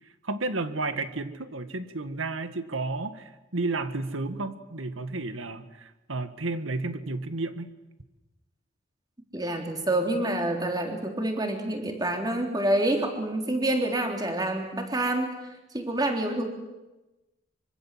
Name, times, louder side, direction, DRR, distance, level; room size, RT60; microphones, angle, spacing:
voice 1, 0.2-7.7, right 3 dB, 85° right, 10 dB, 2.0 m, -32 dB
voice 2, 9.3-15.3 15.7-16.4, right 1 dB, 20° right, 3 dB, 3.6 m, -27 dB
25.0 x 25.0 x 7.7 m, 1.1 s
head